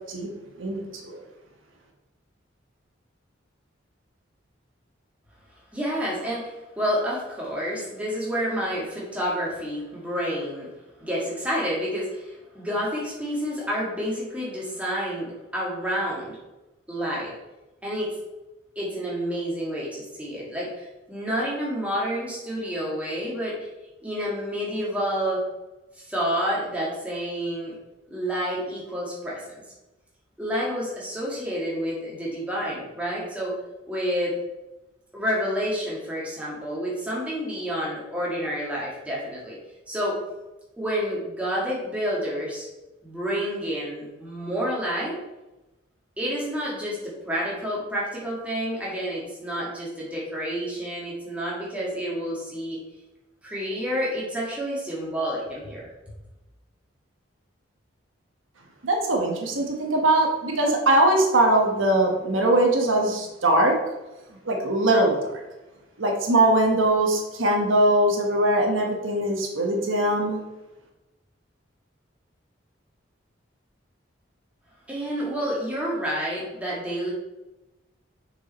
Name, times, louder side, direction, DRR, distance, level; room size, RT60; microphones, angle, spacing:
voice 1, 0.6-1.2 58.8-63.8 64.4-65.4 66.0-70.4, right 1 dB, 85° right, 1 dB, 1.2 m, -21 dB
voice 2, 5.7-10.7 11.0-16.4 16.9-17.3 17.8-18.1 18.8-23.7 24.0-25.4 25.9-27.7 28.1-29.5 30.4-33.5 33.9-34.4 35.1-39.6 39.9-40.2 40.8-42.7 43.0-45.2 46.2-52.8 53.4-55.9 74.9-77.1, equal, 5° right, -5 dB, 1.8 m, -29 dB
6.4 x 4.8 x 4.2 m, 1.0 s
head